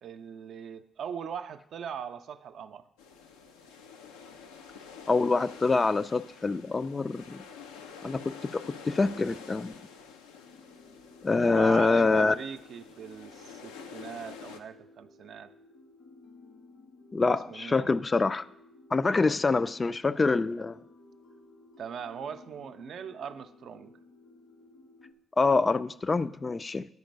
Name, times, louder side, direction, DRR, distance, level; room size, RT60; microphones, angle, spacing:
voice 1, 0.0-2.9 11.4-15.5 17.5-17.9 21.8-23.9, right 7 dB, 65° right, 9 dB, 0.5 m, -40 dB
sound 1, 3.0-14.6, left 6 dB, 85° left, 0.5 m, -48 dB
voice 2, 5.1-7.4 8.0-9.7 11.2-12.3 17.1-18.5 18.9-20.8 25.4-26.9, left 3 dB, 35° left, 13 dB, 0.4 m, -25 dB
sound 2, 10.4-25.1, left 3 dB, 70° left, 1.8 m, -56 dB
9.6 x 4.4 x 5.2 m, 0.75 s
hypercardioid pair, 45°, 0 cm